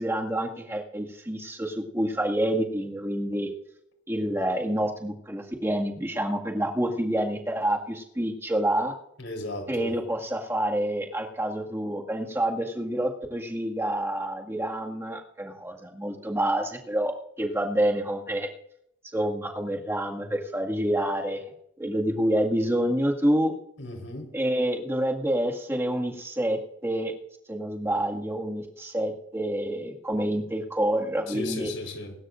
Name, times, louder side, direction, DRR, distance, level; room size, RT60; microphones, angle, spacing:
voice 1, 0.0-3.5 4.1-8.9 9.7-17.1 17.4-18.5 19.1-21.4 21.8-23.5 24.3-27.2 27.5-31.7, right 1 dB, 15° right, 2.0 m, -28 dB
voice 2, 9.2-9.9 23.8-24.3 31.3-32.1, left 2 dB, 85° left, 4.3 m, -35 dB
24.5 x 12.5 x 2.6 m
head